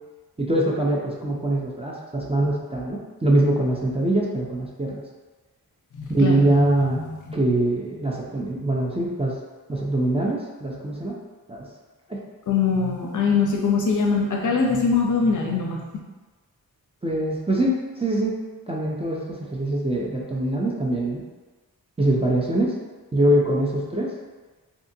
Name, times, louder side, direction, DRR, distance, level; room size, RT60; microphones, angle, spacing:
voice 1, 0.4-5.0 6.1-7.0 7.3-9.4 9.7-11.2 11.5-11.6 12.1-12.2 17.0-18.3 18.7-21.2 22.0-22.8 23.1-24.1, right 1 dB, 15° right, -4 dB, 0.4 m, -23 dB
voice 2, 5.9-6.7 6.9-7.2 12.5-15.8, left 5 dB, 55° left, 0 dB, 0.5 m, -22 dB
2.6 x 2.4 x 2.6 m, 1.3 s
wide cardioid pair, 70°, 37 cm